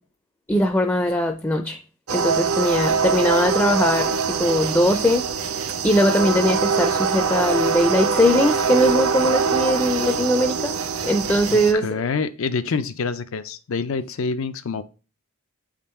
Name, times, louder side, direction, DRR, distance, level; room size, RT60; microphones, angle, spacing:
voice 1, 0.5-1.8 2.1-5.3 5.8-10.7 11.0-11.9, equal, 10° left, 0.4 m, -20 dB
sound 1, 2.1-11.7, right 5 dB, 80° right, 0.8 m, -23 dB
voice 2, 11.5-14.8, left 5 dB, 65° left, 0.5 m, -26 dB
8.3 x 3.7 x 4.3 m
head